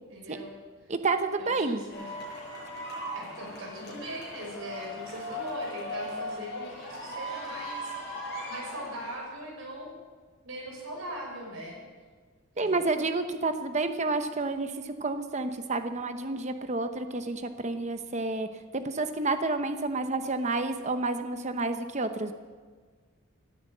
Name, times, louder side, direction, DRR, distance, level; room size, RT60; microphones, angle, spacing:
voice 1, 0.1-0.5 1.4-2.1 3.1-9.9 10.4-11.8 12.5-12.9, equal, 75° right, -2 dB, 5.8 m, -40 dB
voice 2, 0.9-1.8 12.6-18.5 18.7-22.3, right 3 dB, 35° right, 8 dB, 0.9 m, -30 dB
sound 1, 1.9-9.2, equal, 50° left, 6.2 m, -38 dB
17.5 x 9.5 x 7.8 m, 1.5 s
head